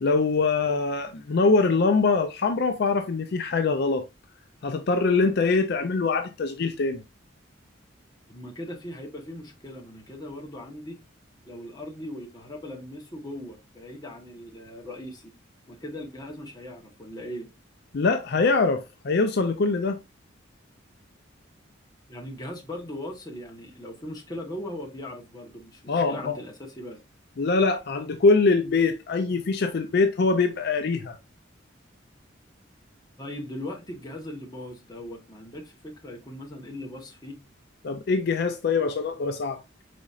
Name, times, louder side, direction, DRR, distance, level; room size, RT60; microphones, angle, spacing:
voice 1, 0.0-4.0 4.6-7.0 17.9-20.0 25.9-26.4 27.4-31.2 37.8-39.6, left 4 dB, 55° left, 0.4 m, -23 dB
voice 2, 8.3-11.0 11.4-15.3 15.7-17.5 22.1-27.0 33.2-37.4, left 1 dB, 20° left, 1.0 m, -39 dB
5.0 x 4.1 x 2.4 m
head